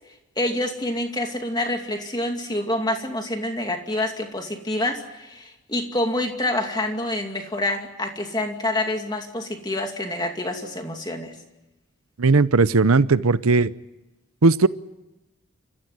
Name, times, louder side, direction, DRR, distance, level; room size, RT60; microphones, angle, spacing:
voice 1, 0.4-11.3, left 1 dB, 20° left, 4 dB, 2.5 m, -27 dB
voice 2, 12.2-13.7 14.4-14.7, right 3 dB, 85° right, 16 dB, 0.8 m, -17 dB
28.0 x 15.0 x 9.7 m, 1.0 s
head